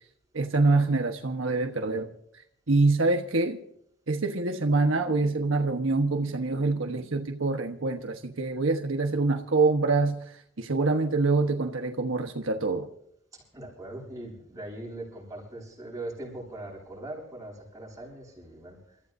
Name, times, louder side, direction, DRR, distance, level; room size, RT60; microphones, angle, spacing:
voice 1, 0.3-2.1 2.7-3.6 4.1-12.9, right 3 dB, 75° right, 1.3 m, -25 dB
voice 2, 13.3-19.0, right 1 dB, 15° right, 8.0 m, -41 dB
29.0 x 15.0 x 2.7 m
head